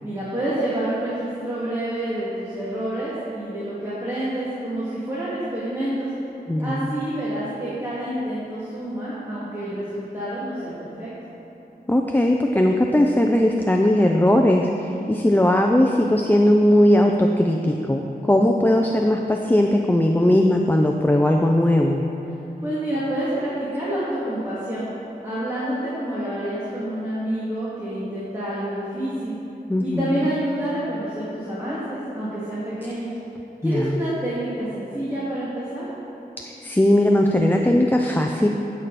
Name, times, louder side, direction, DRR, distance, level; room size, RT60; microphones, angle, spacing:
voice 1, 0.0-6.1 6.6-11.1 22.6-24.9 25.2-29.4 29.8-33.1 33.6-35.9, right 1 dB, 15° right, -11 dB, 2.5 m, -28 dB
voice 2, 6.5-6.9 11.9-22.0 29.7-30.2 33.6-34.0 36.5-38.5, left 1 dB, 10° left, 1 dB, 0.5 m, -19 dB
16.0 x 6.9 x 4.2 m, 2.9 s
wide cardioid pair, 95°, 16 cm